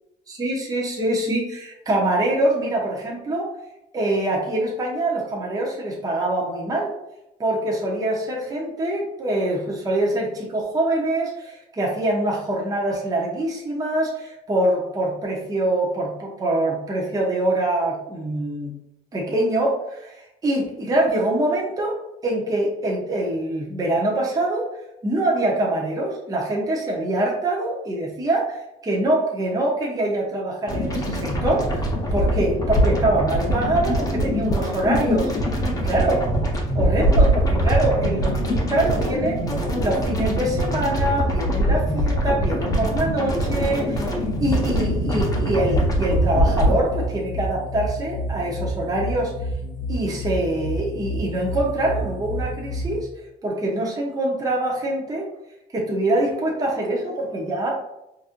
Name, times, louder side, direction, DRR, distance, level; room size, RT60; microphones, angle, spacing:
voice 1, 0.3-3.5 3.9-6.9 7.4-18.7 19.1-24.7 25.0-31.8 32.1-35.6 35.8-36.2 36.7-39.4 39.8-49.3 49.9-53.1 53.4-55.3 55.7-57.7, right 1 dB, 20° right, -3 dB, 0.7 m, -24 dB
sound 1, 30.7-46.8, equal, 20° left, 0.7 m, -22 dB
sound 2, 44.3-53.0, equal, 60° left, 0.6 m, -30 dB
4.1 x 2.6 x 2.5 m, 0.88 s
cardioid pair, 110°, 17 cm